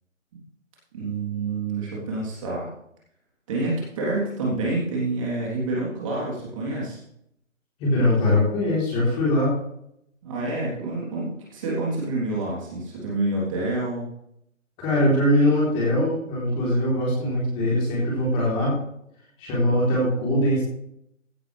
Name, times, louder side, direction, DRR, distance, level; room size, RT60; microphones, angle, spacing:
voice 1, 0.9-2.7 3.5-7.0 10.2-14.1, right 2 dB, 25° right, -5 dB, 3.5 m, -28 dB
voice 2, 7.8-9.6 14.8-18.8 19.4-20.6, left 1 dB, 15° left, -5 dB, 3.7 m, -22 dB
16.0 x 9.9 x 3.4 m, 0.73 s
figure-of-eight pair, 155°, 39 cm